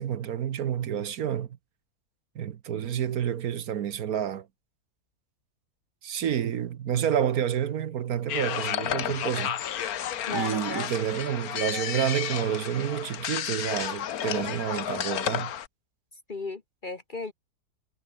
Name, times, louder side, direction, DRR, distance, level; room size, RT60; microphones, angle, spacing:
voice 1, 0.0-1.5 2.3-4.5 6.0-9.6 10.3-15.5, right 9 dB, 65° right, 1.3 m, -29 dB
sound 1, 8.3-15.7, left 10 dB, 65° left, 1.4 m, -32 dB
voice 2, 10.3-11.1 16.3-17.3, left 3 dB, 35° left, 1.0 m, -35 dB
omnidirectional pair, 1.8 m